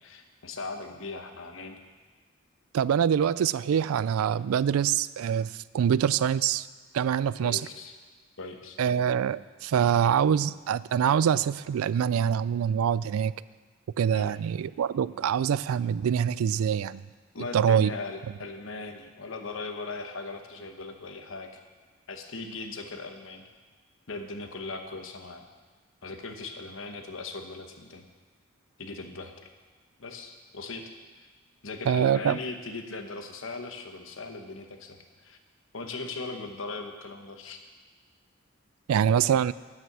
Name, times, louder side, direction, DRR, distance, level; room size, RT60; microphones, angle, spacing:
voice 1, 0.0-1.8 7.4-8.0 8.4-8.8 14.1-14.3 17.3-21.6 22.1-23.4 24.1-25.4 26.0-28.1 28.8-29.3 30.0-30.9 31.2-31.3 31.6-35.4 35.7-37.6, left 3 dB, 70° left, 6 dB, 1.1 m, -39 dB
voice 2, 2.7-6.7 6.9-7.6 8.8-13.3 14.0-17.0 17.5-17.9 31.9-32.4 38.9-39.5, right 8 dB, 85° right, 18 dB, 0.3 m, -25 dB
9.6 x 9.5 x 6.1 m, 1.4 s
head